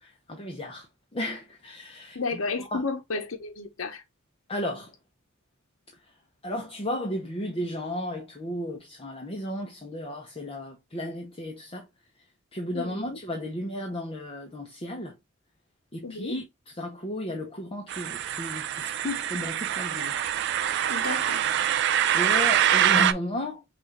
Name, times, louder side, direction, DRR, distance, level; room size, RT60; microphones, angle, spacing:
voice 1, 0.0-2.9 4.5-4.9 6.0-6.1 6.4-11.9 12.5-15.2 15.9-20.2 22.1-23.6, left 1 dB, 25° left, 0.7 m, -34 dB
voice 2, 2.1-4.0 12.7-13.2 16.0-16.3 20.9-21.5, left 4 dB, 70° left, 0.9 m, -32 dB
sound 1, 17.9-23.1, right 10 dB, 55° right, 0.3 m, -25 dB
6.0 x 2.4 x 3.1 m
head